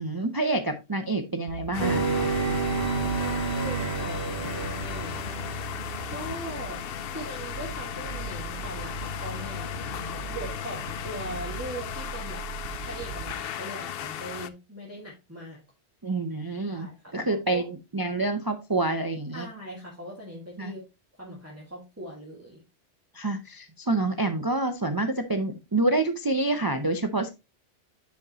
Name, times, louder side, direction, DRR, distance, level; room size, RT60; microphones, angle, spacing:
voice 1, 0.0-2.1 16.0-19.5 20.6-20.7 23.1-27.3, right 2 dB, 25° right, 7 dB, 0.5 m, -27 dB
sound 1, 1.5-13.4, right 9 dB, 80° right, 0.9 m, -40 dB
sound 2, 1.7-14.5, left 11 dB, 60° left, 0.7 m, -36 dB
sound 3, 1.8-6.0, right 4 dB, 45° right, 1.5 m, -29 dB
voice 2, 3.2-5.2 6.1-12.4 12.8-15.6 16.7-17.7 19.3-20.8 21.2-22.6, right 1 dB, 10° right, -4 dB, 1.8 m, -40 dB
10.0 x 5.2 x 2.9 m, 0.25 s
omnidirectional pair, 1.2 m